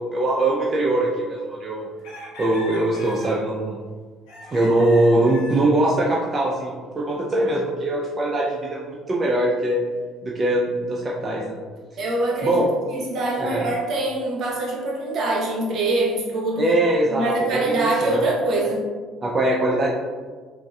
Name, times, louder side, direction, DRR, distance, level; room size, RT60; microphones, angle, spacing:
voice 1, 0.0-1.9 2.4-3.8 4.5-9.8 10.2-11.6 12.4-12.7 13.4-13.7 16.6-18.2 19.2-19.9, right 1 dB, 30° right, -3 dB, 0.4 m, -22 dB
sound 1, 2.0-3.5 4.3-5.7, left 1 dB, 85° left, 0.8 m, -39 dB
voice 2, 12.0-16.6 17.1-18.8, right 2 dB, 60° right, -2 dB, 0.8 m, -24 dB
3.8 x 2.5 x 2.3 m, 1.5 s
supercardioid pair, 90°, 0 cm